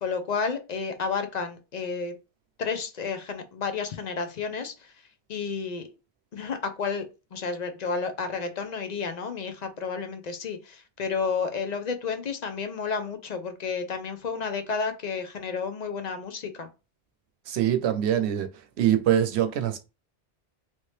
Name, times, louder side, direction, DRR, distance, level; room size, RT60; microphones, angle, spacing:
voice 1, 0.0-2.1 2.6-4.9 5.3-5.9 6.3-7.0 7.3-16.7, left 5 dB, 50° left, 0.6 m, -31 dB
voice 2, 17.5-18.5 18.8-19.8, right 10 dB, 85° right, 0.9 m, -23 dB
3.2 x 2.7 x 3.2 m
omnidirectional pair, 1.1 m